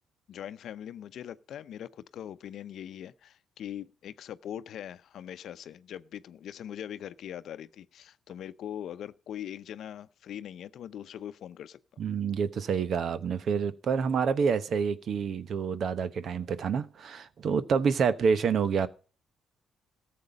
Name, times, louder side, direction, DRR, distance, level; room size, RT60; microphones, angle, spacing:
voice 1, 0.3-11.8, left 10 dB, 70° left, 0.7 m, -41 dB
voice 2, 12.0-18.9, right 6 dB, 60° right, 1.0 m, -28 dB
14.0 x 7.6 x 5.2 m
cardioid pair, 90°, 0 cm